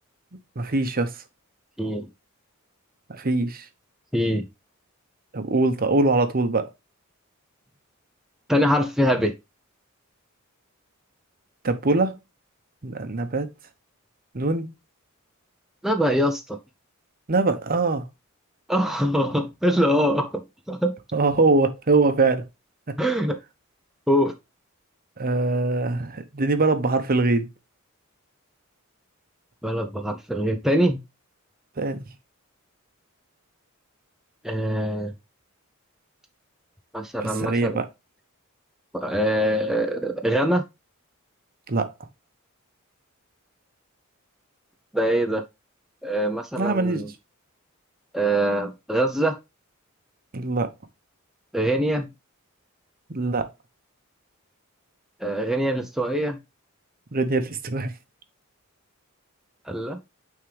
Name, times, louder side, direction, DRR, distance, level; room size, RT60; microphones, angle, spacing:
voice 1, 0.6-1.1 3.1-3.6 5.3-6.7 11.6-12.2 12.8-13.5 14.3-14.7 17.3-18.0 21.1-22.4 25.2-27.5 31.8-32.0 37.5-37.8 41.7-41.9 46.6-47.0 50.3-50.7 53.1-53.5 57.1-57.9, right 3 dB, 45° right, 0.9 m, -22 dB
voice 2, 4.1-4.4 8.5-9.3 15.8-16.6 18.7-21.0 23.0-23.4 24.1-24.3 29.6-31.0 34.4-35.1 36.9-37.8 38.9-40.6 44.9-45.4 46.0-47.1 48.1-49.4 51.5-52.1 55.2-56.4 59.7-60.0, equal, ahead, 0.6 m, -23 dB
9.2 x 3.7 x 3.3 m
head